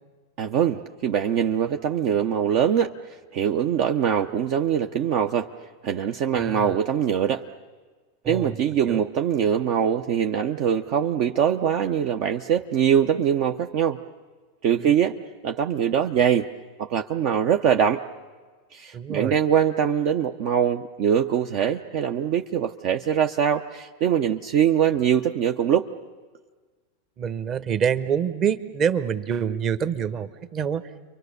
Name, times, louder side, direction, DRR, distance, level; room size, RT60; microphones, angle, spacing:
voice 1, 0.4-5.5 5.8-7.4 8.3-14.0 14.6-15.2 15.4-16.5 16.8-18.0 18.7-25.9, right 9 dB, 55° right, 5 dB, 0.7 m, -23 dB
voice 2, 6.3-6.8 8.2-8.5 8.9-9.0 14.8-14.9 18.9-19.3 27.2-30.8, right 7 dB, 35° right, 12 dB, 1.2 m, -26 dB
30.0 x 24.0 x 6.7 m, 1.4 s
hypercardioid pair, 100°, 0 cm